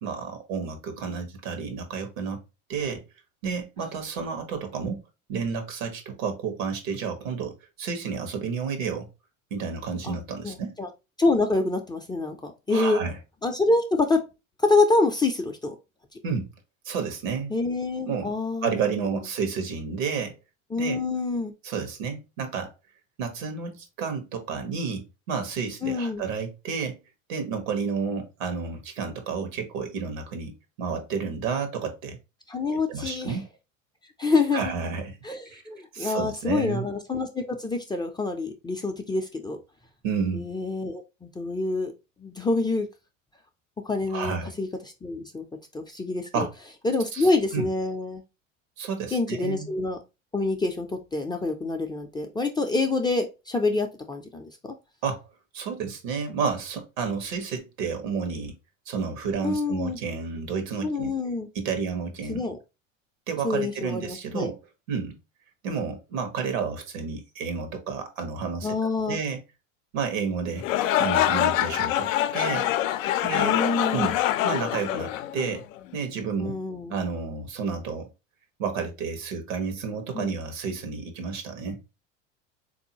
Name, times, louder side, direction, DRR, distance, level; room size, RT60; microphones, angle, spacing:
voice 1, 0.0-2.4 2.7-3.0 3.4-5.0 5.3-9.1 9.5-10.7 12.7-13.2 16.2-16.5 16.8-17.5 18.1-18.3 18.6-20.4 20.8-21.0 21.6-22.7 23.2-27.0 27.3-32.2 32.9-33.5 34.5-35.1 35.5-35.6 35.9-36.9 40.0-40.5 44.1-44.5 46.3-46.5 47.1-47.7 48.8-49.8 55.0-55.2 55.5-58.6 58.9-61.1 61.5-62.4 63.3-64.6 64.9-65.2 65.6-68.7 69.1-69.4 69.9-70.7 71.0-72.7 73.2-73.5 73.9-74.2 74.4-75.6 75.9-76.5 76.9-78.1 78.6-81.8, right 5 dB, 75° right, 1.1 m, -31 dB
voice 2, 10.4-10.9 11.2-13.0 13.4-14.2 14.6-15.8 17.5-18.7 19.0-19.1 20.7-21.5 25.8-26.2 32.5-33.4 34.2-34.7 35.2-39.6 40.3-41.9 42.2-42.9 43.8-44.7 45.0-45.5 45.7-46.5 46.8-48.2 49.1-50.0 50.3-54.7 59.4-60.0 60.8-61.5 62.3-62.6 63.4-64.5 68.6-69.2 73.3-74.2 76.4-76.9 80.1-80.3, left 3 dB, 10° left, 0.4 m, -26 dB
sound 1, 70.6-75.8, left 12 dB, 75° left, 0.5 m, -25 dB
3.7 x 2.7 x 2.8 m
hypercardioid pair, 90°, 39 cm